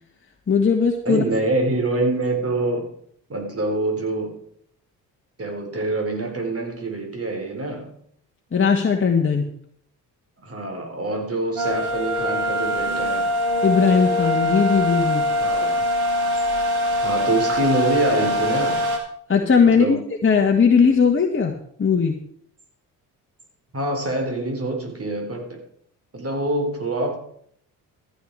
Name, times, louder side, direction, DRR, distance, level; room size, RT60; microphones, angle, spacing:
voice 1, 0.5-1.2 8.5-9.5 13.6-15.2 19.3-22.1, left 6 dB, 25° left, 2 dB, 1.7 m, -18 dB
voice 2, 1.0-2.9 3.3-4.4 5.4-8.0 10.4-13.3 15.4-15.8 17.0-18.9 19.7-20.0 23.7-25.6 26.1-27.2, right 2 dB, 30° right, 3 dB, 4.1 m, -25 dB
sound 1, 11.6-19.0, left 1 dB, 50° right, 3.4 m, -23 dB
14.0 x 10.0 x 4.8 m, 0.64 s
figure-of-eight pair, 45°, 47 cm